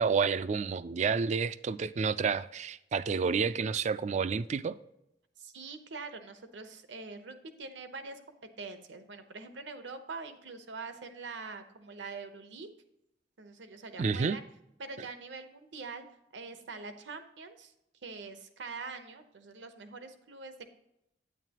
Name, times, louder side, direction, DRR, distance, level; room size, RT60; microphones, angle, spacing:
voice 1, 0.0-4.8 14.0-14.4, right 5 dB, 40° right, 0.3 m, -29 dB
voice 2, 5.4-12.7 13.4-14.4 14.8-16.0 16.3-17.7 18.0-20.7, right 4 dB, 75° right, 0.9 m, -44 dB
9.1 x 8.9 x 2.9 m
head